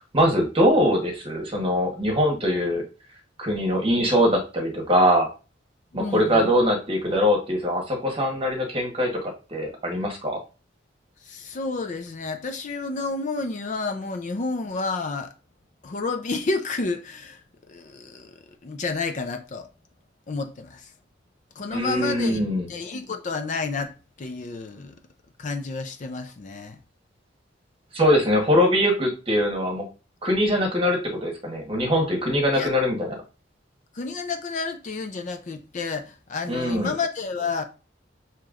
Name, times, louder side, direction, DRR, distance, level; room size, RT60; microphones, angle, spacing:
voice 1, 0.1-2.8 3.4-5.3 5.9-10.4 21.7-22.7 27.9-29.9 30.2-33.2 36.5-36.9, equal, 30° right, 1.1 m, -22 dB
voice 2, 5.9-6.5 11.2-15.3 15.8-19.7 20.3-20.9 21.6-22.4 22.7-25.0 25.4-26.8 32.5-32.7 33.9-37.6, left 3 dB, 40° left, 0.4 m, -30 dB
6.6 x 2.9 x 2.4 m
head